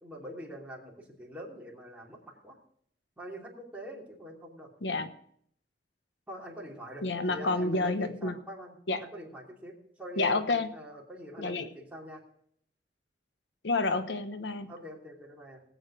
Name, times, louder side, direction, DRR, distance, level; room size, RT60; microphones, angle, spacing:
voice 1, 0.0-2.6 3.2-4.7 6.3-12.2 14.7-15.6, equal, 10° right, -3 dB, 2.9 m, -44 dB
voice 2, 7.0-8.3 8.9-9.0 10.2-10.7 11.4-11.7 13.6-14.7, left 3 dB, 80° left, 9 dB, 1.0 m, -29 dB
19.0 x 8.1 x 4.9 m, 0.66 s
head